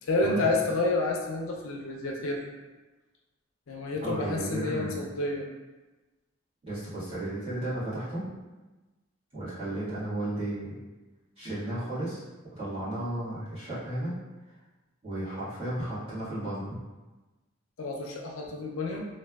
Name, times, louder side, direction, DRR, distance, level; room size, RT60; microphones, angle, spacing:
voice 1, 0.0-2.4 3.7-5.4 17.8-19.1, left 2 dB, 90° left, 0 dB, 0.5 m, -29 dB
voice 2, 4.0-5.0 6.7-8.2 9.3-10.8 11.4-12.2 12.5-14.1 15.0-16.8, right 1 dB, 30° right, -13 dB, 1.5 m, -34 dB
3.2 x 2.3 x 2.3 m, 1.2 s
head